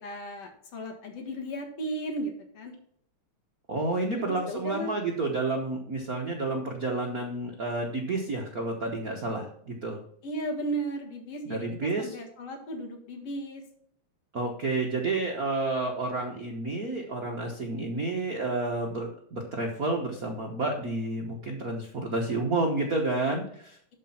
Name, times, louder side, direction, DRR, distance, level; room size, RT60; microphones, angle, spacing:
voice 1, 0.0-2.7 4.2-4.9 10.2-11.7 12.0-13.6, right 1 dB, 55° left, 3 dB, 2.7 m, -35 dB
voice 2, 3.7-10.0 11.4-12.2 14.3-23.8, right 2 dB, 65° right, 1 dB, 0.8 m, -30 dB
12.0 x 4.5 x 5.8 m, 0.66 s
omnidirectional pair, 3.5 m